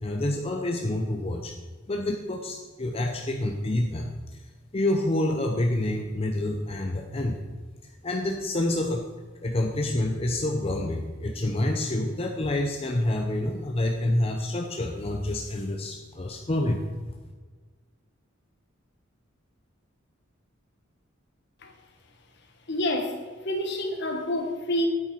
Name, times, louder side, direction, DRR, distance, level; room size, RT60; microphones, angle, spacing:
voice 1, 0.0-1.5 1.9-4.1 4.7-7.4 8.0-9.0 9.4-17.1, left 1 dB, 30° left, 1 dB, 0.7 m, -27 dB
voice 2, 22.7-24.9, left 1 dB, 60° left, 4 dB, 1.5 m, -28 dB
9.1 x 9.0 x 4.4 m, 1.4 s
head